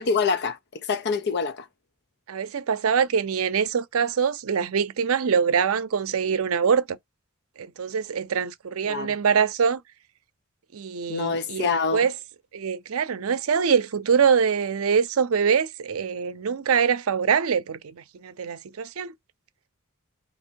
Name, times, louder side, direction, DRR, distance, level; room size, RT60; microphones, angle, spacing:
voice 1, 0.0-1.7 8.8-9.2 11.1-12.0, left 5 dB, 55° left, 0.5 m, -26 dB
voice 2, 2.3-7.0 7.6-9.8 10.7-12.1 12.5-19.1, right 6 dB, 90° right, 0.5 m, -24 dB
3.4 x 2.9 x 4.5 m
head